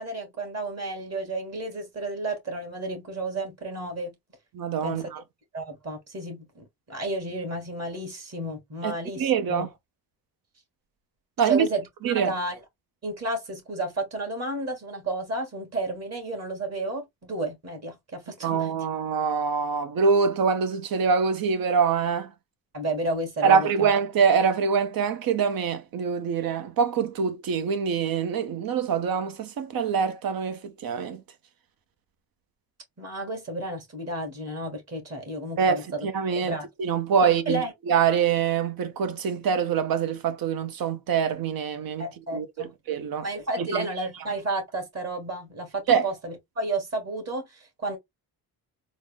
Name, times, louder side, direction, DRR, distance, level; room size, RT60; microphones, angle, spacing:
voice 1, 0.0-4.1 4.8-5.1 5.5-9.7 11.4-12.6 13.0-18.7 22.7-23.9 33.0-36.1 36.4-36.7 37.2-37.7 42.0-42.7 43.2-48.0, right 2 dB, 45° right, 2.0 m, -32 dB
voice 2, 4.5-5.2 8.8-9.7 11.4-11.7 12.0-12.3 18.4-22.3 23.4-31.2 35.6-42.1 42.3-43.3 43.6-43.9 45.9-46.1, right 6 dB, 65° right, 0.9 m, -25 dB
4.0 x 2.1 x 3.5 m
cardioid pair, 115°, 37 cm